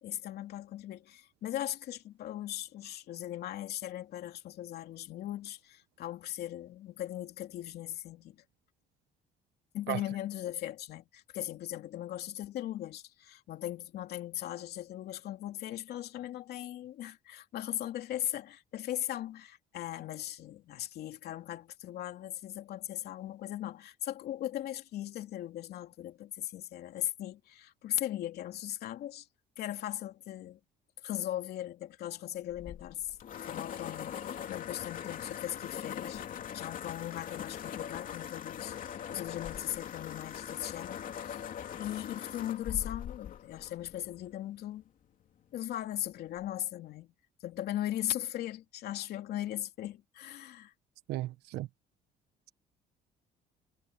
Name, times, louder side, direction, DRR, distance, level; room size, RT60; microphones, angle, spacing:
voice 1, 0.0-8.4 9.7-29.2 29.6-30.6 31.0-33.2 33.4-36.2 36.5-41.4 41.8-44.8 45.5-47.1 47.4-50.7, left 12 dB, 70° left, 3.0 m, -38 dB
sound 1, 32.5-44.3, left 9 dB, 55° left, 3.1 m, -41 dB
voice 2, 51.1-51.7, right 16 dB, 80° right, 1.1 m, -34 dB
cardioid pair, 110°, 17 cm